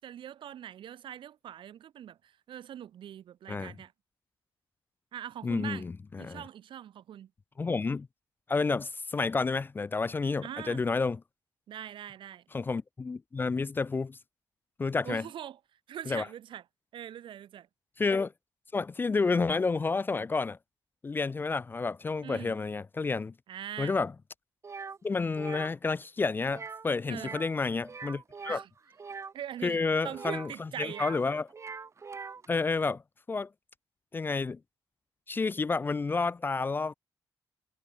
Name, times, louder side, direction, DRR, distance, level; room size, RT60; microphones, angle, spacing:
voice 1, 0.0-3.9 5.1-5.8 6.2-7.3 10.4-10.8 11.7-12.4 15.0-15.6 15.9-16.6 16.9-17.7 22.2-22.5 23.5-24.0 27.1-27.4 28.5-28.7 29.3-29.8 30.0-31.1, right 10 dB, 75° right, 7.5 m, -42 dB
voice 2, 5.4-6.4 7.6-8.1 8.5-11.2 12.5-14.2 14.8-15.3 16.1-16.3 18.0-18.3 18.7-20.6 21.0-23.3 23.8-24.1 25.0-28.6 29.6-31.5 32.5-33.0 33.3-33.5 34.1-34.6 35.3-36.9, left 4 dB, 25° left, 0.5 m, -30 dB
sound 1, 24.6-25.0 25.3-25.7 26.5-26.9 27.1-27.5 27.8-29.3 30.1-31.2 31.5-32.5, right 5 dB, 35° right, 2.7 m, -42 dB
cardioid pair, 125°, 9 cm